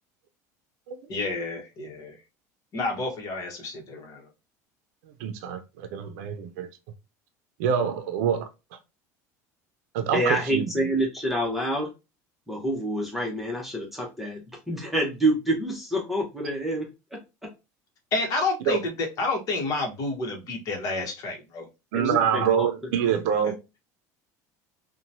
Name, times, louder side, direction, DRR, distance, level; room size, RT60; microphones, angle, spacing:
voice 1, 1.1-2.2 2.7-4.3 18.1-21.7 22.0-22.3 23.4-23.5, left 3 dB, 45° left, 1.0 m, -30 dB
voice 2, 5.2-6.7 7.6-8.5 9.9-10.6 18.7-18.8 21.9-23.5, right 8 dB, 80° right, 0.5 m, -25 dB
voice 3, 10.1-11.9 12.5-14.4 14.7-17.5 21.9-22.7 22.9-23.1, right 1 dB, ahead, 0.8 m, -27 dB
2.9 x 2.2 x 2.6 m
supercardioid pair, 135°, 8 cm